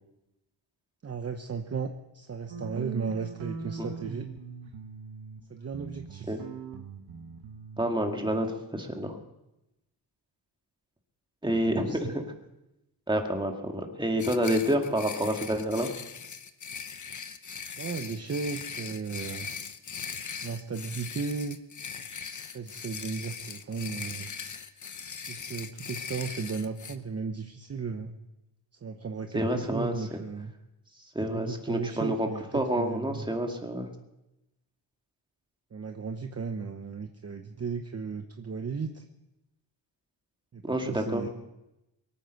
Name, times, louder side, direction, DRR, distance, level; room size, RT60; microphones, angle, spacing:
voice 1, 1.0-4.3 5.5-6.3 11.6-12.1 17.8-19.5 20.4-21.6 22.5-24.3 25.2-28.1 28.8-30.5 31.2-33.3 35.7-39.0 40.5-41.3, right 5 dB, 35° right, 6 dB, 0.9 m, -35 dB
sound 1, 2.5-5.4 5.7-7.9, right 5 dB, 85° right, 1.5 m, -40 dB
voice 2, 7.8-8.5 8.7-9.2 11.4-12.3 13.1-15.9 29.3-30.2 31.2-32.3 32.5-33.9 40.6-41.3, right 1 dB, 10° right, 3 dB, 2.0 m, -28 dB
sound 2, 14.2-26.9, left 6 dB, 40° left, 1.0 m, -40 dB
23.0 x 9.3 x 6.5 m, 0.94 s
wide cardioid pair, 120°, 45 cm